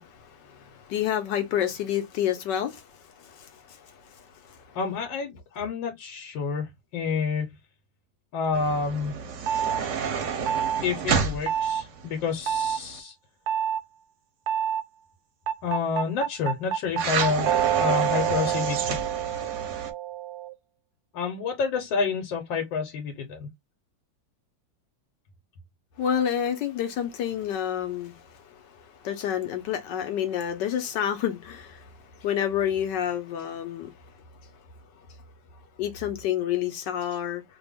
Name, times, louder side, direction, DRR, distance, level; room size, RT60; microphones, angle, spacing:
voice 1, 0.0-4.8 26.0-33.9 35.8-37.4, left 10 dB, 75° left, 1.3 m, -29 dB
voice 2, 4.7-7.5 8.3-9.1 10.8-13.1 15.6-19.0 21.1-23.5, left 5 dB, 90° left, 1.6 m, -29 dB
sound 1, 8.5-13.0 17.0-19.9, right 6 dB, 65° right, 0.7 m, -30 dB
sound 2, 9.5-9.8 10.5-10.8 11.5-11.8 12.5-12.8 13.5-13.8 14.5-14.8 15.5-20.5, right 9 dB, 90° right, 1.3 m, -27 dB
3.4 x 2.2 x 3.4 m
omnidirectional pair, 2.0 m